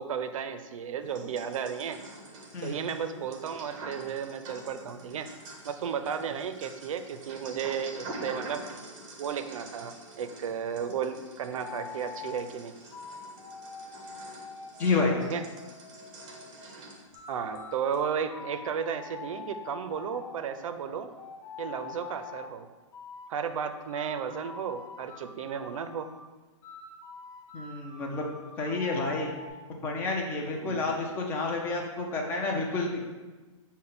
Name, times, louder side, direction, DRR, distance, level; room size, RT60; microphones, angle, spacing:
voice 1, 0.0-2.0 2.6-5.3 5.7-8.7 9.2-12.7 15.2-15.5 17.3-21.1 21.6-22.7 23.3-26.1 30.5-30.9, right 7 dB, 80° right, 9 dB, 0.4 m, -34 dB
sound 1, 1.0-17.6 17.9-18.0, right 2 dB, 25° right, 0.8 m, -46 dB
sound 2, 11.6-12.4 12.9-16.6 17.1-22.4 22.9-26.2 26.6-29.5, left 5 dB, 60° left, 0.7 m, -45 dB
voice 2, 14.8-15.2 27.5-28.2 28.6-29.3 29.7-33.0, left 3 dB, 10° left, 1 dB, 0.4 m, -29 dB
5.7 x 2.1 x 3.8 m, 1.2 s
hypercardioid pair, 165°, 17 cm